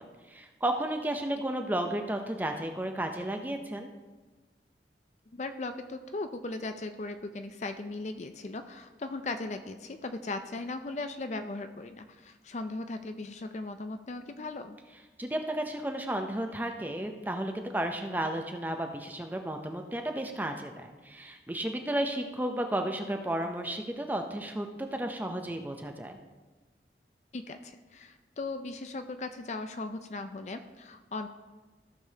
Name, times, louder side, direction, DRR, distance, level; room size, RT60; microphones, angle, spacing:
voice 1, 0.0-3.9 15.2-26.2, right 1 dB, 10° right, 4 dB, 0.6 m, -33 dB
voice 2, 5.3-14.8 27.3-31.3, left 2 dB, 40° left, 8 dB, 0.4 m, -38 dB
14.5 x 6.8 x 2.8 m, 1.3 s
head